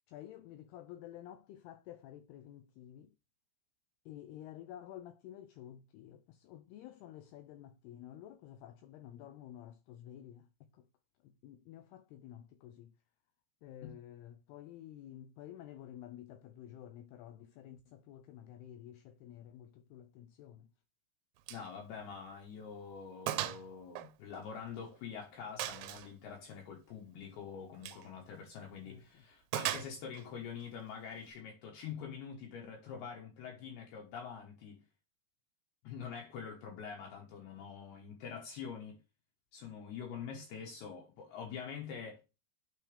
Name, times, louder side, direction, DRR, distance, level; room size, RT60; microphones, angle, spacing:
voice 1, 0.1-3.1 4.1-10.9 11.2-12.9 13.6-20.7 28.8-29.2, left 11 dB, 85° left, 2.3 m, -51 dB
voice 2, 21.5-34.8 35.8-39.0 39.5-42.2, left 6 dB, 70° left, 3.0 m, -45 dB
Gunshot gunfire, 21.5-21.7 22.0-22.1 22.6-22.7 23.3-23.6 24.0-24.9 25.6-26.1 27.7-28.1 29.5-30.3, right 14 dB, 85° right, 3.1 m, -38 dB
9.3 x 4.6 x 3.3 m
omnidirectional pair, 5.3 m